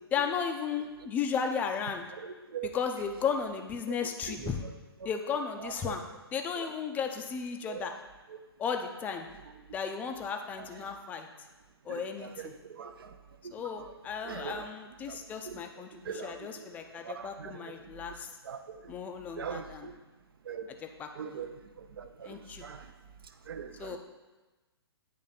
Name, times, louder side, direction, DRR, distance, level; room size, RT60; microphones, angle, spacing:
voice 1, 0.1-2.1 2.6-4.6 5.0-6.0 6.3-7.9 8.6-9.3 9.7-11.3 11.9-12.5 13.5-18.3 18.9-19.9 20.7-21.5 22.2-22.7 23.8-24.0, left 6 dB, 10° left, 4 dB, 0.4 m, -35 dB
voice 2, 14.3-14.6 15.1-15.2 15.5-15.6 16.1-16.3 17.1-17.5 18.5-18.6 19.4-19.6 20.5-20.6 21.2-21.5 22.0-22.1 22.6-22.8 23.5-24.0, right 8 dB, 60° right, 9 dB, 0.5 m, -39 dB
9.2 x 3.3 x 4.0 m, 1.2 s
figure-of-eight pair, 125°, 14 cm